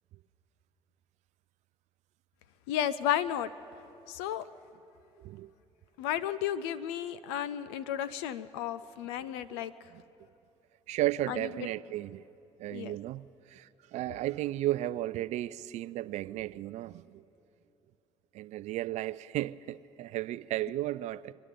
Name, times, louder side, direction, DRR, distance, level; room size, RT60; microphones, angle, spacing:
voice 1, 2.7-3.5 4.1-4.4 6.0-9.7 11.3-11.4 12.7-12.9, left 10 dB, 75° left, 0.4 m, -33 dB
voice 2, 5.2-5.5 9.5-9.6 9.9-10.0 10.9-12.2 12.6-17.2 18.3-21.3, right 15 dB, 60° right, 0.4 m, -34 dB
25.5 x 11.0 x 5.1 m
hypercardioid pair, 55°, 14 cm